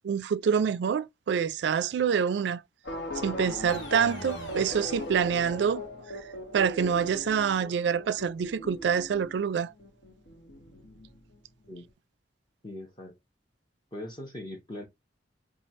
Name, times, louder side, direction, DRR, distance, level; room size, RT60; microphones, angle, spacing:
voice 1, 0.0-2.6 3.2-5.8 6.5-9.7, right 7 dB, 70° right, 0.3 m, -26 dB
sound 1, 2.9-11.3 11.6-11.7, left 1 dB, 65° left, 0.9 m, -39 dB
sound 2, 3.7-6.0, left 1 dB, 90° left, 1.2 m, -43 dB
voice 2, 12.6-13.2 13.9-14.8, left 1 dB, 25° left, 0.9 m, -40 dB
3.2 x 2.3 x 4.1 m
head